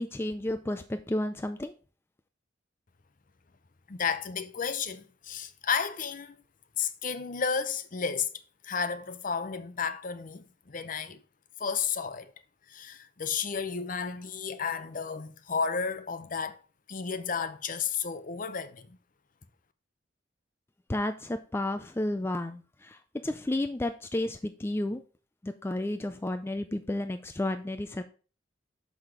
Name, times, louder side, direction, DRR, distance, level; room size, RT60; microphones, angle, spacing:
voice 1, 0.0-1.7 20.9-25.0 25.4-28.0, left 1 dB, 15° left, 0.4 m, -32 dB
voice 2, 3.9-6.4 6.8-8.3 8.6-11.2 11.6-12.3 12.7-16.6 16.9-19.0, left 6 dB, 45° left, 0.7 m, -32 dB
6.4 x 5.7 x 4.9 m
head